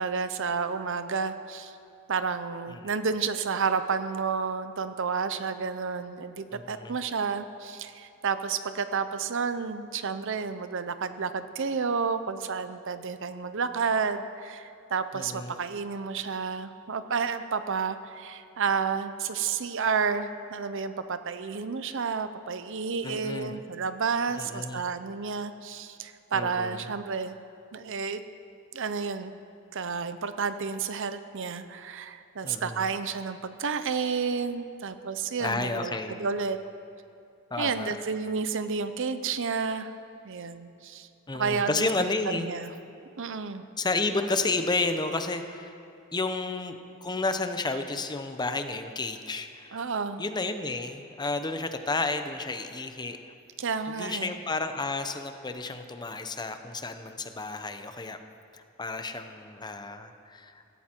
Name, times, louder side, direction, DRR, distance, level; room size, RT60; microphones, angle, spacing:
voice 1, 0.0-1.8 2.1-27.4 27.7-28.2 28.7-29.3 29.7-36.6 37.6-39.9 40.2-41.1 41.3-41.9 42.3-42.7 43.2-43.7 49.7-50.2 53.6-54.4, right 5 dB, 60° right, 11 dB, 0.7 m, -31 dB
voice 2, 6.5-6.9 15.1-15.5 23.0-23.5 24.3-24.8 26.3-26.8 32.4-32.8 35.4-36.2 37.5-38.0 41.3-42.5 43.8-45.7 46.1-49.8 50.2-53.2 53.9-58.2 58.5-60.5, left 3 dB, 20° left, 8 dB, 0.8 m, -31 dB
16.0 x 16.0 x 4.5 m, 2.7 s
head